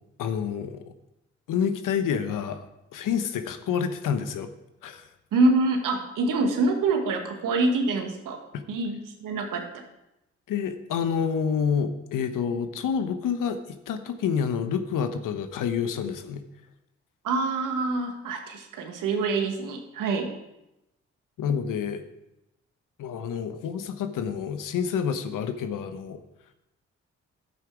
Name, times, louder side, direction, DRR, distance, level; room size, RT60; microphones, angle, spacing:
voice 1, 0.2-0.8 1.5-4.5 4.8-5.1 8.5-8.6 10.5-16.4 21.4-22.0 23.0-26.2, left 7 dB, 75° left, 9 dB, 1.0 m, -28 dB
voice 2, 5.3-8.4 8.7-9.8 17.2-20.3, right 3 dB, 75° right, 4 dB, 1.7 m, -25 dB
11.0 x 8.3 x 4.8 m, 0.91 s
supercardioid pair, 45°, 32 cm